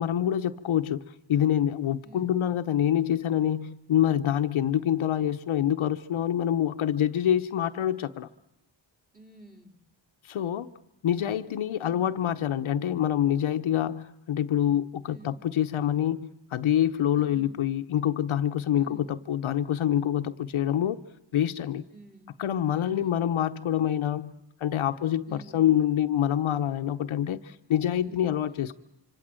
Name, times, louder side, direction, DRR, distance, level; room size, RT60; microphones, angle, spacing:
voice 1, 0.0-8.3 10.2-10.7 11.0-21.0 21.3-21.8 22.4-24.3 24.6-28.8, left 10 dB, 85° left, 0.9 m, -26 dB
voice 2, 2.0-2.3 9.1-9.7 11.8-12.1 15.1-15.4 17.2-17.5 18.8-19.1 21.9-22.3 22.8-23.3 25.3-25.7 28.0-28.6, right 2 dB, 20° right, 3.2 m, -51 dB
26.0 x 25.5 x 7.6 m
wide cardioid pair, 115°, 47 cm